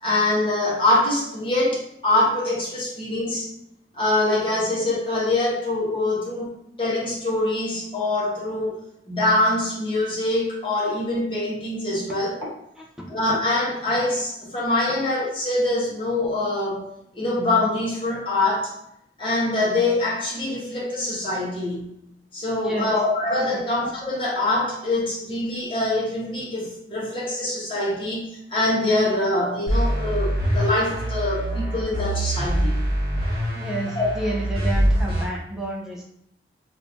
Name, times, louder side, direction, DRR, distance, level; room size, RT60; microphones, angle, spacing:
voice 1, 0.0-3.5 4.0-6.5 6.8-8.8 9.1-12.5 13.1-16.9 17.1-18.7 19.2-21.9 22.3-32.8 34.0-34.1, left 2 dB, 30° left, -5 dB, 1.1 m, -24 dB
voice 2, 22.6-22.9 33.5-36.0, right 1 dB, 5° right, -4 dB, 0.6 m, -30 dB
sound 1, 29.7-35.2, right 1 dB, 35° right, 1.3 m, -24 dB
3.2 x 2.5 x 3.4 m, 0.77 s
head